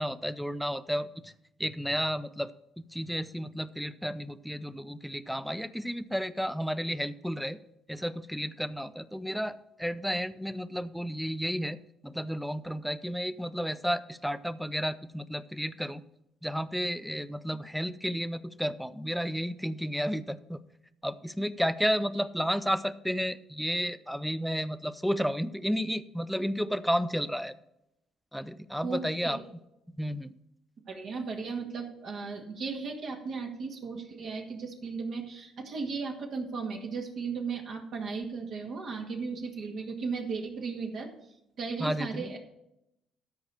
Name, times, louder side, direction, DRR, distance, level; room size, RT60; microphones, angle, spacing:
voice 1, 0.0-1.3 1.6-2.5 2.9-7.6 7.9-11.8 12.0-16.0 16.4-20.6 21.0-27.5 28.3-29.4 30.0-30.3 41.8-42.4, equal, ahead, 14 dB, 0.7 m, -32 dB
voice 2, 28.8-29.4 30.9-41.1 41.6-42.4, right 4 dB, 60° right, 1 dB, 2.0 m, -36 dB
13.0 x 4.7 x 6.7 m, 0.84 s
supercardioid pair, 65°, 0 cm